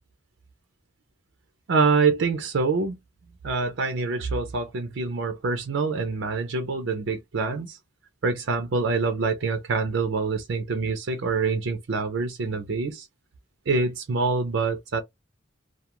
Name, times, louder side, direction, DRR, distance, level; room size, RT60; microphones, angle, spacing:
voice 1, 1.7-3.0 3.4-7.8 8.2-13.1 13.7-15.0, right 4 dB, 75° right, 0.5 m, -25 dB
2.3 x 2.2 x 2.9 m
head